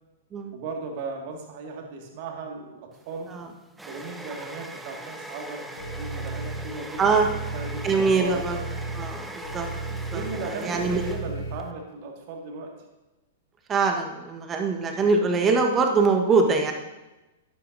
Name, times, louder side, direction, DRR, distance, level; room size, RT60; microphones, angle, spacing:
voice 1, 0.5-3.3 3.9-7.3 7.5-8.4 10.0-12.7, right 4 dB, 45° right, 2 dB, 2.0 m, -36 dB
sound 1, 3.0-11.7, right 1 dB, 5° right, 0.8 m, -41 dB
sound 2, 5.8-11.5, right 2 dB, 70° left, 1.6 m, -35 dB
voice 2, 7.0-7.3 7.8-8.6 8.9-11.0 13.7-16.7, right 4 dB, 20° right, 3 dB, 1.4 m, -23 dB
12.0 x 11.5 x 2.7 m, 1.0 s
figure-of-eight pair, 105°, 0 cm